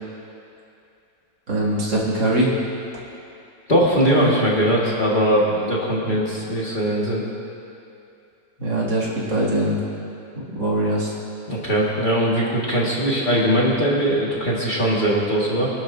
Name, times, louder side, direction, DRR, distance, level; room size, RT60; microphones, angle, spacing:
voice 1, 1.5-2.5 6.1-6.2 8.6-9.8 10.3-11.1, right 1 dB, 75° right, -6 dB, 3.1 m, -22 dB
voice 2, 3.7-7.2 11.5-15.7, equal, 25° left, -5 dB, 1.7 m, -20 dB
23.0 x 11.5 x 2.7 m, 2.6 s
omnidirectional pair, 2.0 m